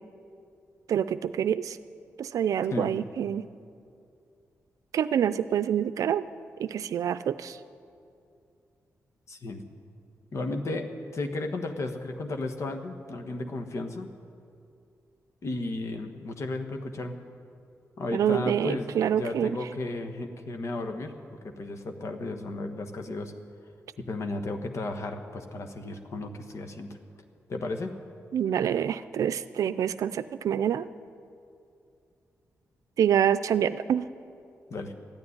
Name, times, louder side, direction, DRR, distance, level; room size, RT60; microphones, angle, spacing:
voice 1, 0.9-1.8 2.2-3.4 4.9-6.2 6.6-7.6 18.1-19.6 28.3-30.9 33.0-34.1, right 9 dB, 85° right, 14 dB, 0.5 m, -26 dB
voice 2, 9.3-9.6 10.3-14.1 15.4-17.2 18.0-21.1 21.4-23.3 24.0-27.0 27.5-27.9 34.7-34.9, left 2 dB, 60° left, 5 dB, 1.4 m, -34 dB
14.0 x 9.7 x 10.0 m, 2.5 s
cardioid pair, 80°, 6 cm